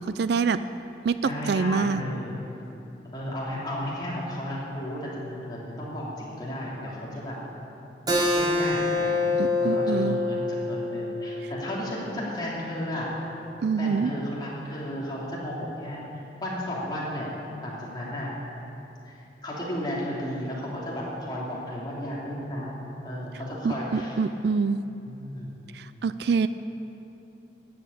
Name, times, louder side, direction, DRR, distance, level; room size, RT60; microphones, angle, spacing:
voice 1, 0.2-0.6 1.0-2.0 9.4-10.2 13.6-14.1 23.6-24.8 25.7-26.5, right 5 dB, 65° right, 13 dB, 0.4 m, -25 dB
voice 2, 1.2-2.4 3.1-7.4 8.2-9.1 9.6-13.1 13.8-16.0 16.4-17.3 17.6-18.3 19.0-19.1 19.4-22.8 23.0-24.2 25.1-25.5, equal, 25° left, -6 dB, 3.0 m, -33 dB
Keyboard (musical), 8.1-13.3, left 2 dB, 20° right, 1.3 m, -27 dB
12.5 x 8.5 x 8.4 m, 2.9 s
head